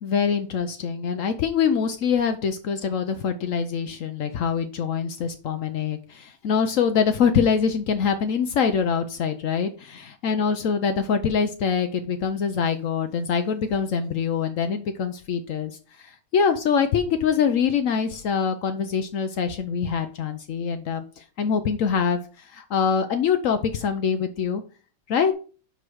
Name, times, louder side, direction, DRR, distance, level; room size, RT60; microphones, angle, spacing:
voice 1, 0.0-15.7 16.0-24.6 25.1-25.3, left 6 dB, 90° left, 7 dB, 0.7 m, -24 dB
5.3 x 4.9 x 6.1 m, 0.38 s
omnidirectional pair, 2.2 m